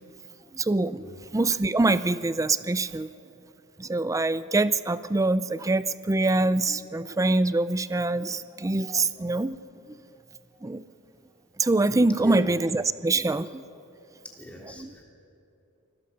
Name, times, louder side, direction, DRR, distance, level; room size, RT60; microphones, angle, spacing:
voice 1, 0.5-1.0 1.3-3.1 3.8-9.6 10.6-10.8 11.6-13.6 14.8-14.9, right 2 dB, 15° right, 15 dB, 0.4 m, -24 dB
voice 2, 14.4-14.8, right 1 dB, 5° left, -1 dB, 3.2 m, -38 dB
28.5 x 21.5 x 5.6 m, 2.9 s
head